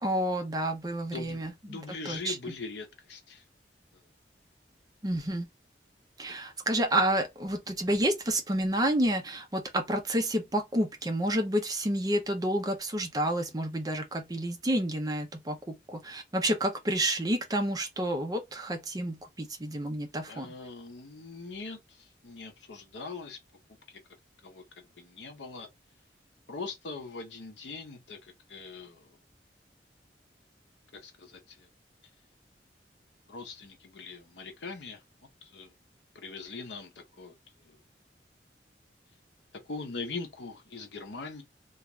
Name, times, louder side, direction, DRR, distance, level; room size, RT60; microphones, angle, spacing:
voice 1, 0.0-1.8 2.1-2.4 5.0-5.5 6.2-20.5, right 1 dB, 20° right, 0.5 m, -29 dB
voice 2, 1.1-3.4 3.9-4.0 6.3-6.4 20.3-23.4 23.9-24.0 24.4-25.7 26.5-29.2 30.9-31.7 33.3-35.0 35.4-35.7 36.1-37.8 39.7-41.4, left 4 dB, 85° left, 0.7 m, -42 dB
2.4 x 2.3 x 2.9 m
head